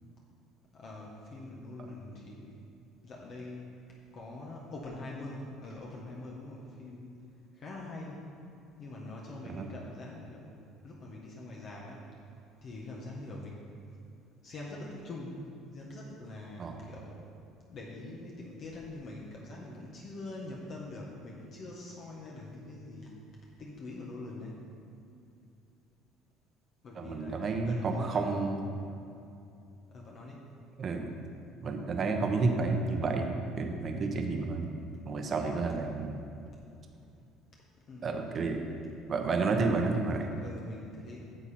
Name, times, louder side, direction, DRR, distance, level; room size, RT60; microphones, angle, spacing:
voice 1, 0.7-2.5 3.0-3.6 4.1-7.1 7.5-8.2 8.8-10.5 10.8-12.0 12.6-14.0 14.4-15.4 15.7-17.3 17.7-23.2 23.6-24.6 26.8-28.3 29.9-30.4 37.9-38.2 40.4-41.3, left 2 dB, 50° left, -3 dB, 1.4 m, -44 dB
voice 2, 27.0-28.7 30.8-31.1 31.6-34.7 35.1-36.1 38.0-38.6 39.1-40.4, right 3 dB, 40° right, 3 dB, 1.1 m, -30 dB
10.0 x 7.0 x 4.4 m, 2.5 s
cardioid pair, 105°, 0 cm